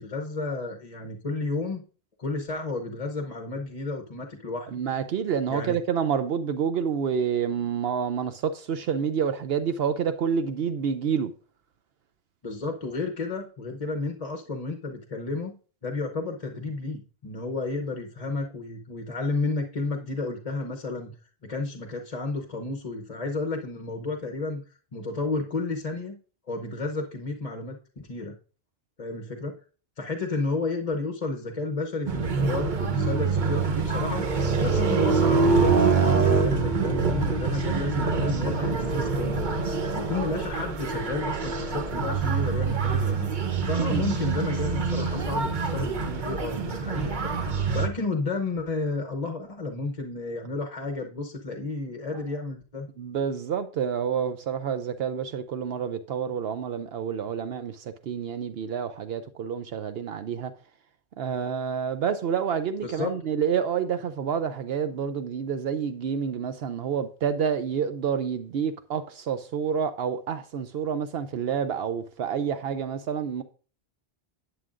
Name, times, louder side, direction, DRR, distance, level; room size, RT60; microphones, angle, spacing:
voice 1, 0.0-1.8 2.2-4.8 5.5-5.8 12.4-15.5 15.8-21.1 21.4-24.6 24.9-26.2 26.5-28.3 29.0-29.5 30.0-34.3 34.6-39.6 39.9-43.3 43.7-47.4 47.7-52.9 62.8-63.1, left 3 dB, 40° left, 0.9 m, -32 dB
voice 2, 4.7-11.3 43.8-44.0 53.0-60.5 61.2-73.4, right 7 dB, 75° right, 0.8 m, -28 dB
sound 1, 32.1-47.9, right 4 dB, 50° right, 1.0 m, -25 dB
11.0 x 8.7 x 2.5 m
omnidirectional pair, 1.1 m